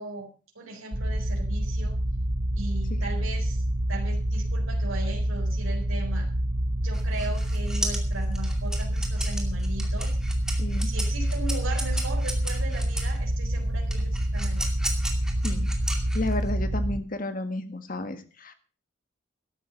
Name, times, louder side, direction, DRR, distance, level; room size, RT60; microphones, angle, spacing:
voice 1, 0.0-2.0 2.6-3.6 3.9-6.3 6.8-10.2 10.8-14.7, right 2 dB, 90° right, 1 dB, 4.3 m, -38 dB
sound 1, 0.9-17.0, right 1 dB, 70° right, 2.8 m, -27 dB
sound 2, 6.9-13.2 13.9-16.5, right 1 dB, 5° right, 2.4 m, -35 dB
voice 2, 10.6-10.9 15.4-15.7 16.1-18.5, left 2 dB, 45° left, 8 dB, 1.8 m, -32 dB
13.5 x 11.5 x 5.2 m, 0.37 s
head